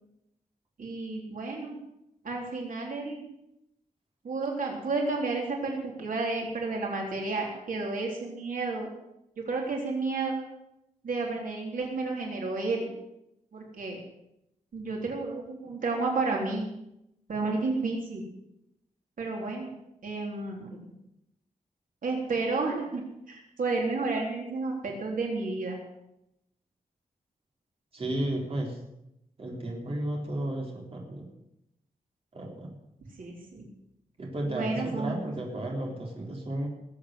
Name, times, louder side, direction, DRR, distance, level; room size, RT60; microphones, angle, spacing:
voice 1, 0.8-1.8 2.2-3.3 4.2-8.9 9.4-10.4 11.0-12.9 13.5-14.0 14.7-16.7 17.3-18.2 19.2-19.7 20.0-20.8 22.0-23.0 23.3-25.8 33.2-33.7 34.5-35.6, right 3 dB, 75° right, -1 dB, 3.7 m, -31 dB
voice 2, 27.9-28.8 29.4-31.2 32.3-32.7 34.2-36.7, right 1 dB, 45° right, -1 dB, 3.8 m, -33 dB
20.0 x 8.6 x 7.9 m, 0.83 s
wide cardioid pair, 160°, 14 cm